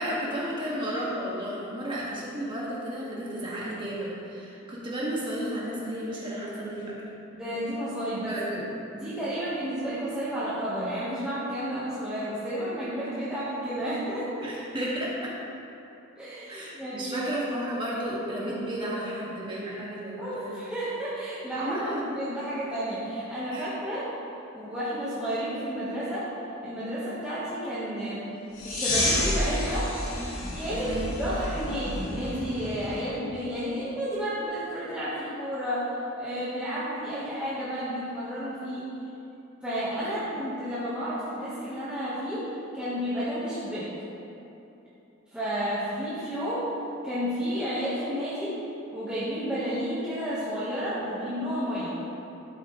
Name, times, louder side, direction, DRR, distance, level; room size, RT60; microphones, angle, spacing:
voice 1, 0.0-7.0 8.3-8.7 14.4-15.3 16.5-20.5 21.6-22.0 23.5-23.6 30.7-31.1 40.0-40.3, right 1 dB, 20° right, -6 dB, 1.8 m, -33 dB
voice 2, 7.3-8.3 8.9-14.5 16.2-17.3 20.2-24.1 24.5-26.3 26.6-28.3 28.6-29.9 30.6-38.9 39.6-43.9 45.3-46.7 47.0-48.6 48.9-52.0, equal, 5° right, -11 dB, 1.3 m, -31 dB
sound 1, 28.5-33.0, left 1 dB, 75° left, 2.1 m, -30 dB
12.0 x 8.1 x 3.1 m, 3.0 s
head